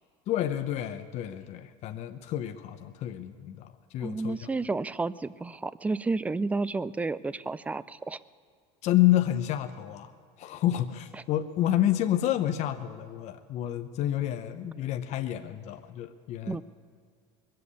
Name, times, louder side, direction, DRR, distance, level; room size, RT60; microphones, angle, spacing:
voice 1, 0.3-4.5 8.8-10.1 10.4-16.6, left 13 dB, 50° left, 8 dB, 0.8 m, -29 dB
voice 2, 4.0-8.2 16.5-16.6, right 3 dB, 10° right, 18 dB, 0.3 m, -31 dB
21.5 x 7.7 x 8.3 m, 2.1 s
supercardioid pair, 125°, 15 cm